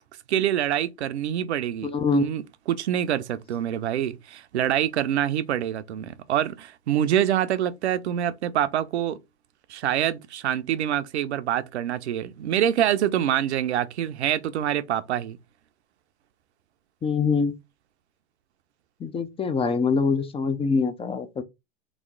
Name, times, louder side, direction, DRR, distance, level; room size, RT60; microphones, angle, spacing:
voice 1, 0.3-9.2 9.7-15.4, right 10 dB, 80° right, 0.6 m, -26 dB
voice 2, 1.8-2.2 17.0-17.5 19.0-21.4, left 4 dB, 15° left, 0.5 m, -24 dB
3.5 x 3.1 x 3.8 m
hypercardioid pair, 105°, 33 cm